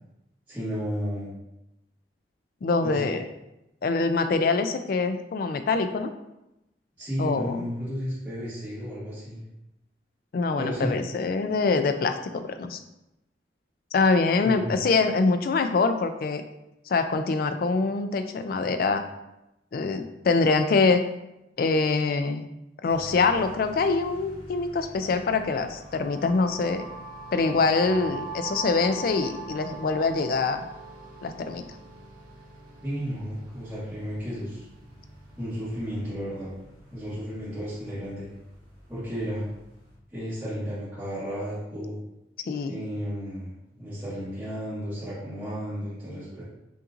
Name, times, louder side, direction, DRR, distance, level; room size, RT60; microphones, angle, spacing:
voice 1, 0.5-1.3 2.8-3.0 7.0-9.4 10.6-10.9 14.4-14.7 32.8-34.6 35.4-36.5 36.9-38.2 38.9-39.5 40.1-42.0 42.7-46.4, equal, 10° right, -16 dB, 1.4 m, -33 dB
voice 2, 2.6-3.2 3.8-6.1 7.2-7.5 10.3-12.8 13.9-16.4 16.9-19.0 19.7-21.0 21.6-22.5 22.8-26.9 27.3-30.6 31.2-31.6 42.5-42.7, left 4 dB, 50° left, 8 dB, 0.3 m, -24 dB
sound 1, 22.8-40.0, equal, 30° left, 1.1 m, -49 dB
sound 2, 25.8-33.7, right 4 dB, 50° right, 0.4 m, -41 dB
5.5 x 2.6 x 2.5 m, 0.91 s
head